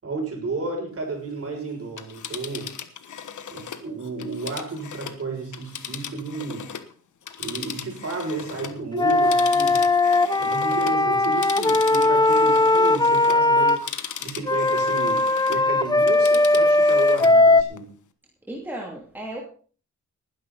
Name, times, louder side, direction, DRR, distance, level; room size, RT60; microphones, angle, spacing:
voice 1, 0.0-2.7 3.5-6.7 7.4-9.9 10.4-13.9 14.2-17.9, right 3 dB, 50° right, 1 dB, 6.6 m, -32 dB
Telephone, 1.8-6.9 7.2-15.7 16.0-17.4 17.8-17.9, left 8 dB, 80° left, 1.4 m, -37 dB
Wind instrument woodwind instrument, 9.0-13.8 14.5-17.6, left 2 dB, 15° left, 0.7 m, -19 dB
voice 2, 18.5-19.4, right 1 dB, 5° right, -2 dB, 2.8 m, -34 dB
19.5 x 10.5 x 4.1 m, 0.42 s
wide cardioid pair, 120°, 30 cm